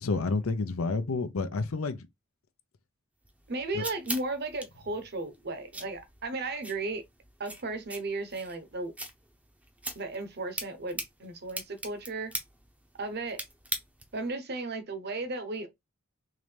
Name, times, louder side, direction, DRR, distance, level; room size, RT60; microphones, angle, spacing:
voice 1, 0.0-2.1 3.7-3.8, left 3 dB, 80° left, 0.6 m, -29 dB
sound 1, 3.2-14.3, right 1 dB, 5° right, 0.6 m, -42 dB
voice 2, 3.5-7.0 7.4-8.9 9.9-12.3 13.0-13.4 14.1-15.7, right 2 dB, 50° right, 0.9 m, -35 dB
3.8 x 3.2 x 3.3 m
head